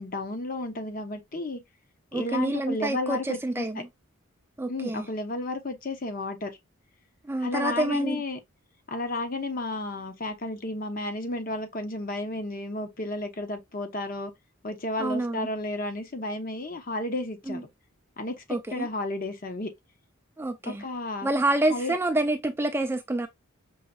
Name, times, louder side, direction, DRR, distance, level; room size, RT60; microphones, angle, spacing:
voice 1, 0.0-1.6 2.1-3.8 4.7-6.6 7.4-8.4 8.9-14.3 14.6-17.7 18.2-19.7 20.6-21.3 21.7-22.0, left 2 dB, 40° left, 0.8 m, -32 dB
voice 2, 2.1-3.9 4.6-5.1 7.2-8.2 15.0-15.5 17.5-17.6 18.5-18.9 20.4-20.8 21.2-23.3, right 2 dB, 10° right, 0.3 m, -27 dB
5.5 x 3.1 x 2.3 m
head